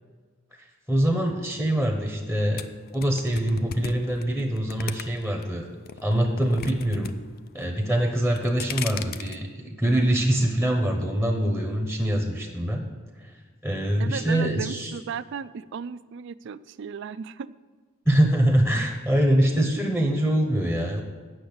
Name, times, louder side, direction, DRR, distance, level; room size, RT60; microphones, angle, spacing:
voice 1, 0.6-2.7 2.9-5.7 6.0-7.1 7.5-12.8 13.2-13.3 13.6-14.9 18.1-21.0, right 1 dB, ahead, 2 dB, 0.9 m, -24 dB
sound 1, 2.6-5.4 5.8-7.1 7.4-7.9 8.2-9.4, left 7 dB, 45° left, 0.4 m, -36 dB
voice 2, 14.0-17.5, right 6 dB, 60° right, 16 dB, 0.3 m, -35 dB
8.6 x 6.3 x 8.0 m, 1.5 s
head